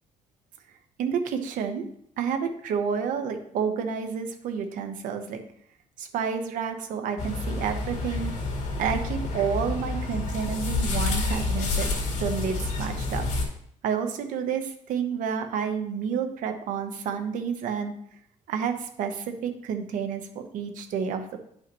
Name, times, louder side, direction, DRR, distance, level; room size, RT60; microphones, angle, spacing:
voice 1, 1.0-1.8 2.2-5.4 6.0-8.3 8.8-11.9 12.2-13.3 13.8-17.9 18.5-21.4, right 6 dB, 85° right, 6 dB, 1.0 m, -30 dB
sound 1, 7.2-13.4, left 3 dB, 65° left, 2.2 m, -29 dB
10.5 x 5.6 x 3.1 m, 0.68 s
cardioid pair, 145°, 13 cm